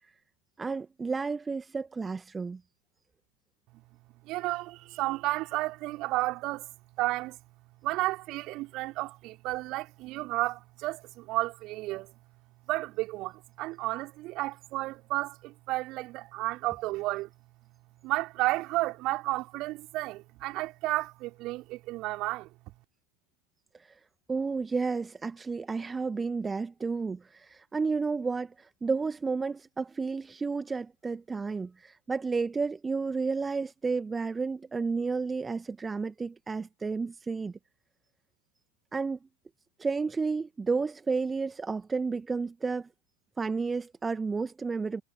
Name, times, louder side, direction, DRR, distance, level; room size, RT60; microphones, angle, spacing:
voice 1, 0.6-2.6 23.7-23.9 24.3-37.5 38.9-39.2 39.8-42.9 43.4-45.0, right 4 dB, 15° right, 1.6 m, -31 dB
voice 2, 4.2-6.7 7.0-7.4 7.8-12.2 12.7-17.3 18.0-22.5, right 19 dB, 40° right, 3.6 m, -32 dB
figure-of-eight pair, 90°, 0 cm